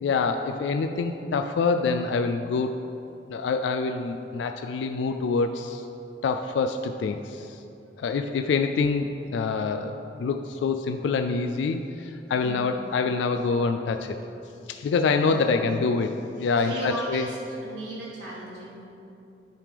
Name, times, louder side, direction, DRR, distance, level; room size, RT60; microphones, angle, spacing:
voice 1, 0.0-2.7 3.3-5.8 6.2-7.6 8.0-14.1 14.7-16.1 16.4-17.2, left 4 dB, 75° left, 6 dB, 0.3 m, -26 dB
voice 2, 12.3-12.7 15.2-15.9 16.6-18.9, right 1 dB, 70° right, -7 dB, 1.3 m, -36 dB
10.5 x 3.4 x 5.0 m, 2.8 s
head